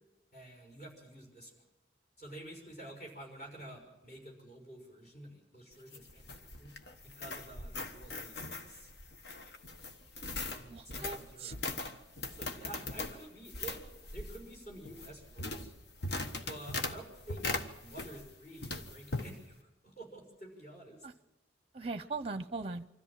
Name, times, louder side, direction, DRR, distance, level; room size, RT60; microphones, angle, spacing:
voice 1, 0.3-1.6 2.2-6.7 7.0-8.9 10.5-11.6 12.3-13.8 14.1-15.7 16.5-17.5 17.8-21.1, right 1 dB, 40° left, 0 dB, 6.1 m, -50 dB
sound 1, 5.7-18.3 18.6-19.3, left 2 dB, 55° left, 1.3 m, -40 dB
voice 2, 10.7-11.5 21.0-21.1 21.7-22.9, right 3 dB, 30° right, 12 dB, 0.7 m, -39 dB
25.5 x 13.5 x 7.5 m, 1.0 s
head